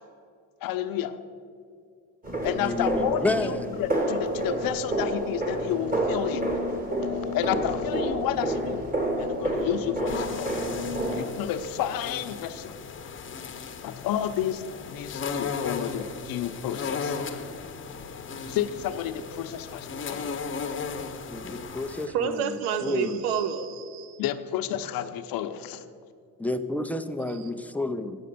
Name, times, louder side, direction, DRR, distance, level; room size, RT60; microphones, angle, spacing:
voice 1, 0.6-1.2 2.4-6.5 7.3-10.6 11.1-12.8 13.8-17.2 18.5-20.3 24.2-25.8, left 10 dB, 65° left, 0.7 m, -31 dB
sound 1, 2.2-11.2, right 1 dB, 20° right, 1.8 m, -29 dB
voice 2, 2.6-3.8 21.3-22.4 22.8-23.4 26.4-28.2, left 2 dB, 5° left, 0.3 m, -30 dB
sound 2, 10.1-22.1, left 5 dB, 30° left, 0.8 m, -36 dB
voice 3, 22.1-24.2, right 7 dB, 85° right, 0.7 m, -29 dB
8.7 x 6.5 x 6.7 m
cardioid pair, 100°, 38 cm